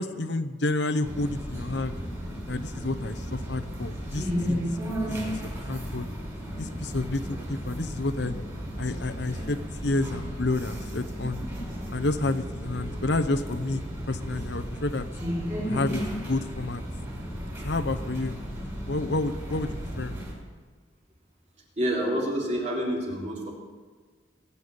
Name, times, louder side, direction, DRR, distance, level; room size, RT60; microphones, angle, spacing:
voice 1, 0.0-1.9 2.5-4.7 5.0-6.1 6.6-8.3 8.8-11.4 11.9-15.1 15.7-16.8 17.6-18.4 18.9-20.1, left 2 dB, 65° left, 10 dB, 0.9 m, -30 dB
sound 1, 1.0-20.3, equal, 15° right, 5.1 m, -34 dB
voice 2, 21.8-23.5, equal, 35° right, -2 dB, 3.7 m, -28 dB
21.0 x 7.0 x 9.7 m, 1.4 s
head